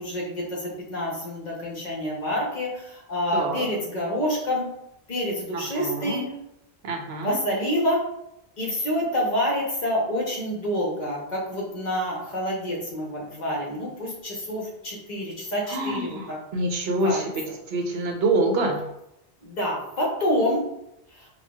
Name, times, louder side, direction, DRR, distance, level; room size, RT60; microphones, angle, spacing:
voice 1, 0.9-2.7 3.1-4.6 5.1-5.3 5.6-6.2 7.2-8.0 8.6-13.0 13.4-14.1 14.5-15.2 15.5-16.0 17.0-17.2 19.6-20.6, equal, 45° left, -3 dB, 0.8 m, -26 dB
voice 2, 3.3-3.7 5.5-6.3 6.8-7.4 15.7-18.8, right 2 dB, 75° right, 2 dB, 0.8 m, -26 dB
4.3 x 2.3 x 2.2 m, 0.82 s
omnidirectional pair, 1.1 m